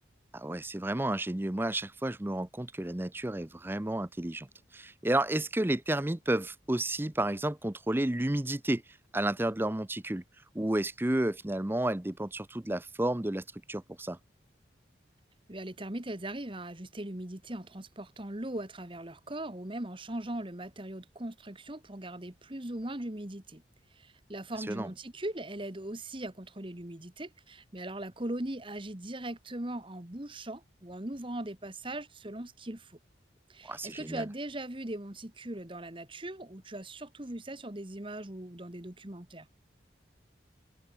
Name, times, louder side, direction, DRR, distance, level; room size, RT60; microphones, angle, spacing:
voice 1, 0.3-4.5 4.7-8.8 9.1-10.2 10.5-14.2 24.7-24.9 33.7-34.3, right 1 dB, 10° right, 0.6 m, -31 dB
voice 2, 15.5-23.6 23.9-33.0 33.5-39.5, right 1 dB, 25° right, 1.6 m, -39 dB
head